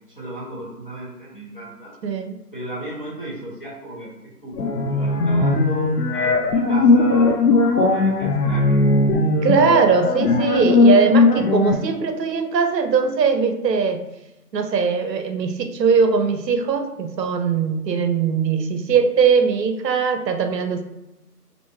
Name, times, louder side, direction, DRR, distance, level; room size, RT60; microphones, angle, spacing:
voice 1, 0.2-1.9 2.5-4.1 4.4-4.6 4.8-8.9, right 1 dB, 35° left, -8 dB, 0.7 m, -35 dB
voice 2, 2.0-2.4 9.4-14.0 14.5-20.8, right 5 dB, 85° right, 6 dB, 0.6 m, -20 dB
sound 1, 4.6-11.7, left 3 dB, 75° left, 0.5 m, -18 dB
2.5 x 2.3 x 2.8 m, 0.96 s
figure-of-eight pair, 180°, 48 cm